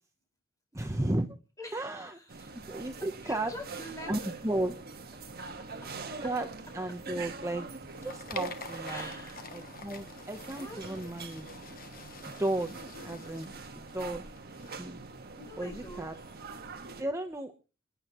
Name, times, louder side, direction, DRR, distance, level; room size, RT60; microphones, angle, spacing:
voice 1, 0.7-1.3 1.7-2.2 2.5-3.5 4.1-4.8 6.2-6.5 6.7-7.7 8.0-9.1 9.5-11.5 12.3-12.8 13.0-14.3 14.8-15.0 15.6-16.1 17.0-17.5, right 1 dB, 15° right, 4 dB, 1.0 m, -34 dB
voice 2, 1.6-2.5 3.2-4.1 5.4-6.3 6.9-7.0 8.9-9.5 10.5-11.0 15.3-16.1, left 1 dB, 15° left, 2 dB, 5.3 m, -46 dB
sound 1, 2.3-17.0, right 3 dB, 50° right, 1.7 m, -43 dB
sound 2, 7.6-14.7, left 6 dB, 45° left, 1.3 m, -48 dB
28.0 x 9.7 x 3.1 m, 0.34 s
head